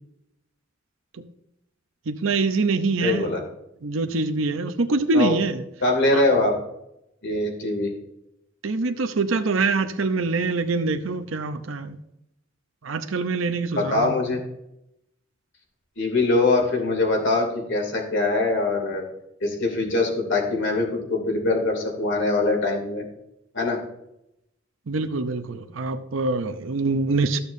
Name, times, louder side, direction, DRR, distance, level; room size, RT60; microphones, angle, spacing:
voice 1, 2.1-3.3 3.8-5.6 6.1-6.2 8.6-12.0 12.8-14.1 24.9-27.4, right 3 dB, 85° right, 7 dB, 0.7 m, -24 dB
voice 2, 3.0-3.4 5.1-5.3 5.8-6.5 7.2-7.9 13.8-14.4 16.0-19.0 19.4-23.0 23.5-23.8, left 2 dB, 65° left, 1 dB, 2.7 m, -23 dB
14.0 x 6.8 x 2.7 m, 0.82 s
head